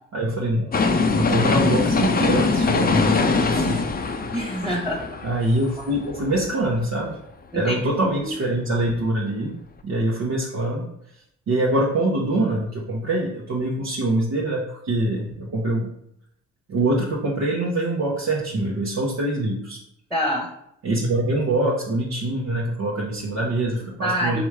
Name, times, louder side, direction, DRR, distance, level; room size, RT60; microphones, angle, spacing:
voice 1, 0.1-0.7 1.1-3.9 4.2-4.3 5.2-7.2 7.5-9.5 9.8-10.9 11.5-15.9 16.7-19.8 20.8-24.4, right 1 dB, 55° right, -4 dB, 1.0 m, -24 dB
sound 1, 0.7-6.7 7.1-7.2, left 4 dB, 25° left, 0.6 m, -22 dB
voice 2, 4.3-5.1 7.5-7.8 8.2-8.3 20.1-20.5 24.0-24.4, equal, ahead, -1 dB, 1.2 m, -25 dB
3.6 x 3.0 x 4.7 m, 0.73 s
supercardioid pair, 55°, 34 cm